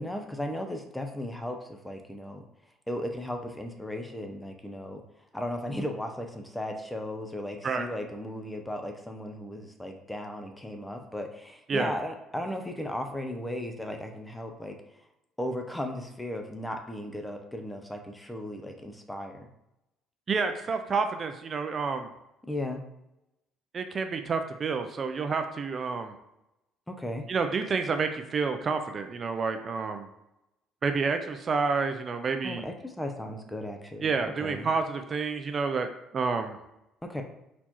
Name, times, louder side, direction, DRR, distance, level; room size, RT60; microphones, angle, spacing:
voice 1, 0.0-2.4 2.9-5.0 5.3-14.8 15.4-19.5 22.5-22.8 26.9-27.3 32.4-34.1 34.4-34.7 37.0-37.2, left 1 dB, 5° left, 4 dB, 0.6 m, -36 dB
voice 2, 20.3-22.1 23.7-26.1 27.3-30.1 30.8-32.7 34.0-35.9 36.1-36.6, right 4 dB, 35° right, 7 dB, 0.4 m, -29 dB
4.3 x 4.1 x 2.9 m, 0.88 s
cardioid pair, 115°, 0 cm